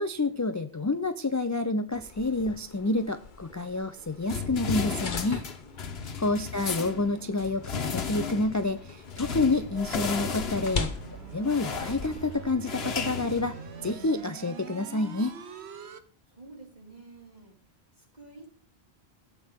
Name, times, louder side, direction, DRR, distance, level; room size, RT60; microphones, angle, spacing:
voice 1, 0.0-5.4 6.2-11.0 11.3-13.6 13.8-15.3, left 2 dB, 20° left, 9 dB, 0.5 m, -28 dB
sound 1, 1.9-12.5, left 4 dB, 50° left, 1.1 m, -41 dB
sound 2, 4.3-14.1, left 5 dB, 75° left, 1.3 m, -35 dB
voice 2, 5.6-6.0 16.3-17.6 18.0-18.6, right 3 dB, 40° right, -4 dB, 5.0 m, -50 dB
sound 3, 9.6-16.0, right 6 dB, 85° right, 1.2 m, -43 dB
15.5 x 8.4 x 3.7 m, 0.41 s
omnidirectional pair, 1.1 m